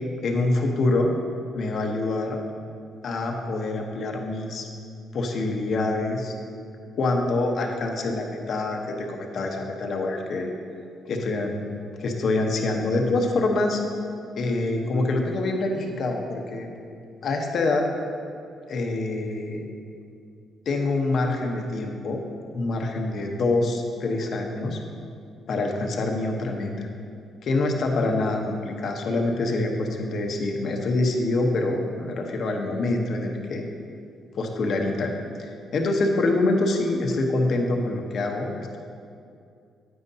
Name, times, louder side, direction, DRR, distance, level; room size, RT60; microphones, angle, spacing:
voice 1, 0.2-1.1 1.5-2.4 3.0-4.7 5.1-6.3 6.9-10.5 11.1-11.5 12.0-13.8 14.4-16.7 17.2-17.8 18.7-19.7 20.7-22.2 22.5-24.8 25.5-26.9 27.4-33.6 34.3-38.8, left 2 dB, 60° left, 2 dB, 1.0 m, -25 dB
9.3 x 8.8 x 2.7 m, 2.4 s
cardioid pair, 90°, 0 cm